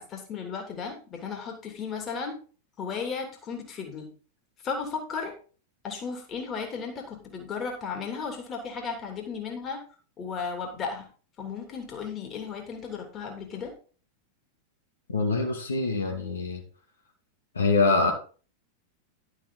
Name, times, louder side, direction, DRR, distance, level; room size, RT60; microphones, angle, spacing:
voice 1, 0.0-2.4 2.8-4.1 4.6-5.3 5.8-9.8 10.2-11.1 11.4-13.7, left 5 dB, 30° left, 3 dB, 2.9 m, -35 dB
voice 2, 15.1-16.6 17.5-18.1, left 3 dB, 75° left, 1 dB, 2.4 m, -24 dB
11.5 x 7.4 x 3.9 m, 0.38 s
figure-of-eight pair, 90°, 0 cm